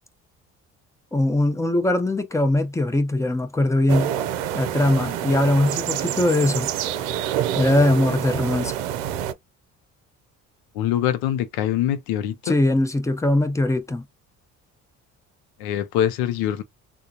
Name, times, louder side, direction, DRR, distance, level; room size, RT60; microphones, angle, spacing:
voice 1, 1.1-4.1 4.5-6.7 7.5-8.7 12.4-14.0, left 1 dB, 10° left, 0.9 m, -21 dB
sound 1, 3.9-9.3, right 10 dB, 90° right, 0.6 m, -27 dB
voice 2, 10.7-12.6 15.6-16.6, left 11 dB, 85° left, 0.7 m, -24 dB
3.7 x 2.3 x 2.8 m
supercardioid pair, 65°, 37 cm